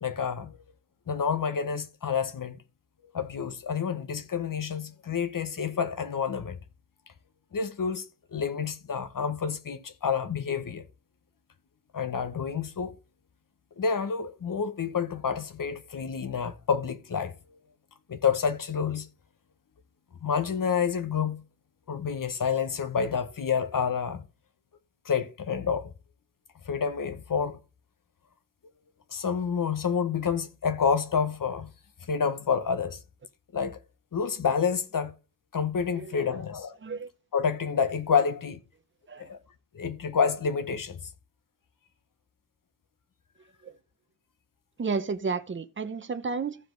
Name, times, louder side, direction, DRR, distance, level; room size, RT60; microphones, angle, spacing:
voice 1, 0.0-0.6 1.1-2.6 3.1-6.6 7.5-8.1 8.3-10.8 11.9-12.9 13.8-17.3 18.1-19.1 20.2-21.4 21.9-24.2 25.0-25.9 26.7-27.6 29.1-31.7 32.1-33.0 33.5-33.8 34.1-35.1 35.5-36.8 37.3-38.6 39.2-39.4 39.7-41.0, left 6 dB, 55° left, 1.0 m, -28 dB
voice 2, 36.0-36.4 36.8-37.1 39.1-39.3 43.6-43.7 44.8-46.6, right 4 dB, 30° right, 0.8 m, -32 dB
15.0 x 5.0 x 3.9 m
wide cardioid pair, 140°, 40 cm